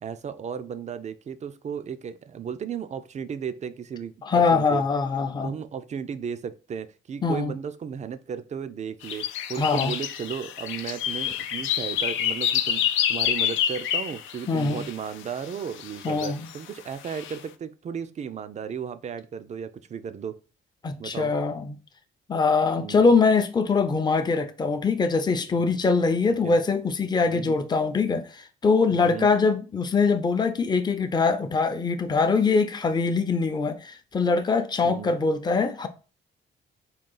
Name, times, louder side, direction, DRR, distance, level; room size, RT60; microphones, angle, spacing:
voice 1, 0.0-4.8 5.4-20.4 21.0-21.3 22.8-23.1 25.5-25.7 26.3-26.6 27.3-27.6 28.9-29.3 34.8-35.1, right 7 dB, 35° right, 0.4 m, -35 dB
voice 2, 4.2-5.5 7.2-7.5 9.6-9.9 14.5-14.9 16.0-16.5 20.8-21.8 22.3-35.9, left 4 dB, 20° left, 0.5 m, -23 dB
sound 1, 9.0-14.9 15.8-16.6 17.0-17.4, left 9 dB, 80° left, 0.4 m, -28 dB
3.8 x 2.3 x 3.8 m
cardioid pair, 90°, 20 cm